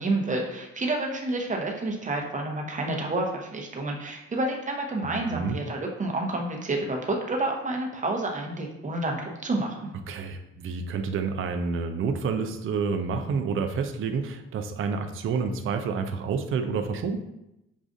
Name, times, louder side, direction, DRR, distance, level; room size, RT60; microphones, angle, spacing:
voice 1, 0.0-9.9, right 2 dB, 25° right, 1 dB, 0.8 m, -29 dB
voice 2, 5.0-5.6 10.1-17.2, right 5 dB, 45° right, 6 dB, 0.4 m, -29 dB
6.2 x 2.4 x 2.6 m, 0.88 s
cardioid pair, 90°, 30 cm